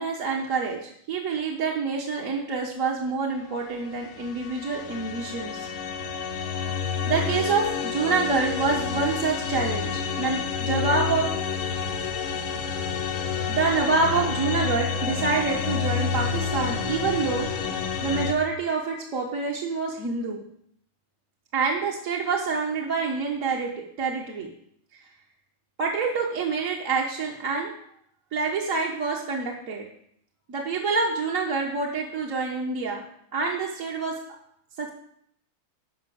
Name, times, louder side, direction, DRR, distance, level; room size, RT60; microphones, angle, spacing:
voice 1, 0.0-5.7 7.0-11.3 13.5-17.5 18.0-20.4 21.5-23.7 24.0-24.5 25.0-25.1 25.8-27.7 28.3-29.9 30.5-33.0 33.3-34.2 34.8-34.9, right 4 dB, 45° right, -3 dB, 1.5 m, -27 dB
sound 1, 4.0-18.3, left 6 dB, 85° left, 2.2 m, -29 dB
11.0 x 6.0 x 7.0 m, 0.69 s
omnidirectional pair, 2.2 m